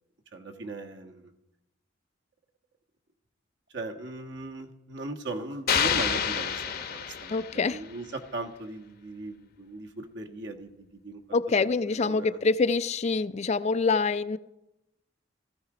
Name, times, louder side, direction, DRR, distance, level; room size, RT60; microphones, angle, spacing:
voice 1, 0.3-1.3 3.7-11.2 11.6-12.4, right 2 dB, 65° right, 1.5 m, -39 dB
sound 1, 5.7-7.8, left 8 dB, 55° left, 0.9 m, -28 dB
voice 2, 7.3-7.8 11.3-14.4, left 4 dB, 35° left, 0.4 m, -25 dB
16.0 x 14.5 x 5.0 m
head